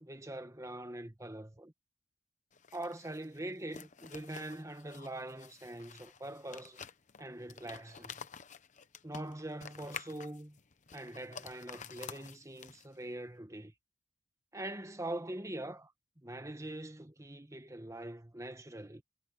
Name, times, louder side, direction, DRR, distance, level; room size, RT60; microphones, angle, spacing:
voice 1, 0.0-1.7 2.7-6.8 7.2-8.3 9.0-10.6 10.9-13.7 14.5-15.9 16.2-19.0, right 1 dB, 15° right, 1.3 m, -43 dB
sound 1, 2.5-13.0, left 6 dB, 40° left, 0.9 m, -50 dB
head